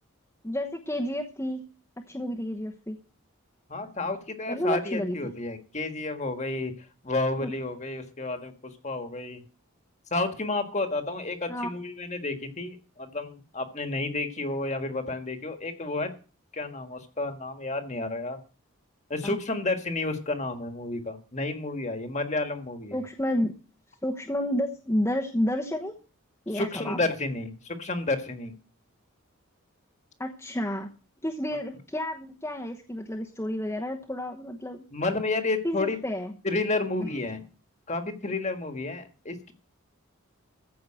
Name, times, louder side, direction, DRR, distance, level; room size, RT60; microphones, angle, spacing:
voice 1, 0.4-1.6 2.1-3.0 4.5-5.3 7.4-7.5 11.5-11.7 19.2-19.4 22.9-23.5 24.0-25.9 26.5-27.0 30.2-30.9 31.2-34.8 35.6-36.3 37.0-37.1, left 1 dB, 10° left, 1 dB, 1.0 m, -30 dB
voice 2, 3.7-6.7 7.0-8.5 8.8-9.4 10.1-16.1 16.5-18.4 19.1-23.0 26.5-28.5 34.9-36.0 36.4-37.4 37.9-39.5, left 2 dB, 30° left, 7 dB, 1.6 m, -31 dB
14.5 x 5.7 x 7.5 m, 0.35 s
head